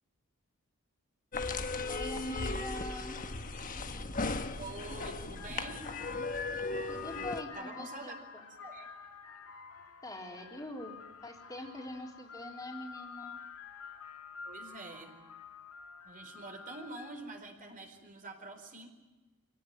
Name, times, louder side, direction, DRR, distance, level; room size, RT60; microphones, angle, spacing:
sound 1, 1.3-7.4, left 3 dB, 40° left, 1.3 m, -37 dB
voice 1, 1.9-3.2 6.9-8.4 10.0-11.0 11.2-13.4, left 1 dB, 15° left, 0 dB, 3.9 m, -43 dB
voice 2, 4.6-5.9 7.5-8.2 8.6-8.9 14.4-15.2 16.0-18.9, right 2 dB, 40° right, 4 dB, 4.3 m, -46 dB
sound 2, 5.4-17.4, left 6 dB, 80° left, 2.5 m, -49 dB
26.5 x 17.5 x 9.4 m, 1.1 s
head